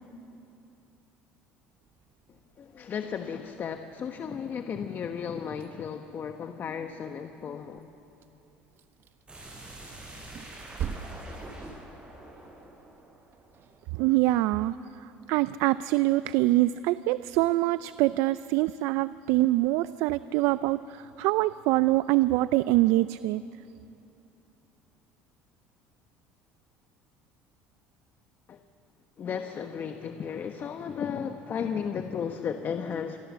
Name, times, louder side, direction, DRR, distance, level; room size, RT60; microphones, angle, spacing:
sound 1, 1.8-15.0, right 7 dB, 55° right, 1.4 m, -46 dB
voice 1, 2.3-7.9 28.5-28.6 29.2-33.2, left 7 dB, 45° left, 7 dB, 1.3 m, -34 dB
sound 2, 9.3-14.0, right 2 dB, 20° right, 8.0 m, -45 dB
voice 2, 13.9-23.4, right 17 dB, 75° right, 16 dB, 0.5 m, -25 dB
27.0 x 22.0 x 7.4 m, 2.9 s
supercardioid pair, 85°, 5 cm